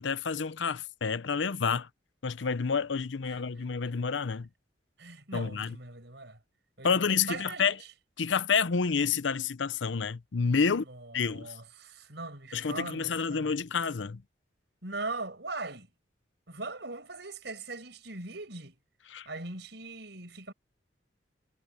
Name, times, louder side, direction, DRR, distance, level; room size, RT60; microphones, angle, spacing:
voice 1, 0.0-1.9 2.2-4.5 5.3-5.7 6.8-7.8 8.2-10.8 11.1-11.5 12.5-14.2 19.1-19.3, left 5 dB, 80° left, 0.7 m, -29 dB
voice 2, 5.0-6.4 6.8-7.9 10.8-13.6 14.8-15.9 16.5-18.8 19.3-20.5, right 3 dB, 65° right, 6.9 m, -40 dB
head